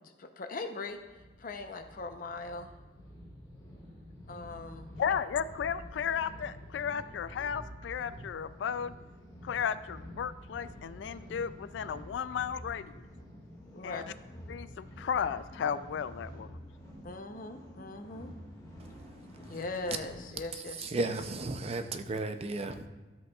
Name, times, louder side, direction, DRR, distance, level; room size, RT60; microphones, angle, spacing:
voice 1, 0.0-1.0 1.4-2.7 4.3-4.9 13.7-14.1 17.0-18.3 19.5-21.1, left 3 dB, 50° left, 0.7 m, -40 dB
sound 1, 0.9-20.3, equal, 20° left, 1.9 m, -49 dB
voice 2, 5.0-8.9 9.4-13.1 13.8-14.0 14.5-16.6, left 7 dB, 80° left, 0.3 m, -34 dB
voice 3, 20.8-22.9, right 2 dB, 35° right, 0.5 m, -34 dB
12.5 x 8.0 x 2.4 m
head